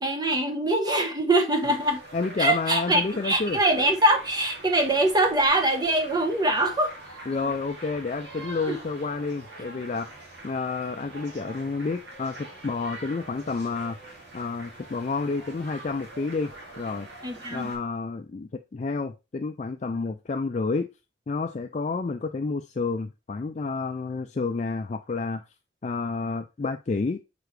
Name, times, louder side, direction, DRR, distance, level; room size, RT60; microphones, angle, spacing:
voice 1, 0.0-2.0 2.4-6.9 7.3-7.5 8.7-8.8 17.2-17.7, right 1 dB, 20° right, 0.9 m, -23 dB
sound 1, 1.6-17.8, right 2 dB, 70° right, 2.5 m, -44 dB
voice 2, 2.1-3.6 7.3-10.1 10.4-16.5 16.8-17.1 17.5-20.9 21.3-25.4 25.8-27.2, left 4 dB, 40° left, 0.4 m, -30 dB
6.8 x 4.5 x 3.2 m
head